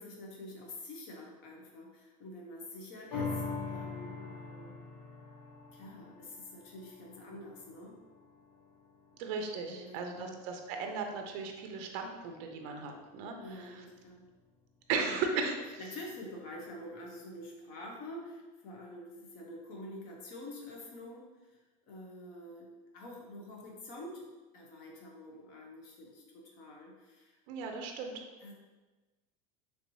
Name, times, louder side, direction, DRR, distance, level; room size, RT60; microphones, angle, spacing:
voice 1, 0.0-4.8 5.7-8.0 9.7-10.4 13.4-14.3 15.0-15.2 15.8-21.6 21.9-24.3 24.5-27.4 28.4-28.5, left 1 dB, 45° left, -1 dB, 0.7 m, -47 dB
sound 1, 3.1-9.8 10.2-10.3, left 4 dB, 85° left, 0.7 m, -43 dB
voice 2, 9.2-13.7 14.9-15.8 27.5-28.2, right 4 dB, 55° right, 4 dB, 0.4 m, -36 dB
3.2 x 3.0 x 2.6 m, 1.2 s
supercardioid pair, 160°, 19 cm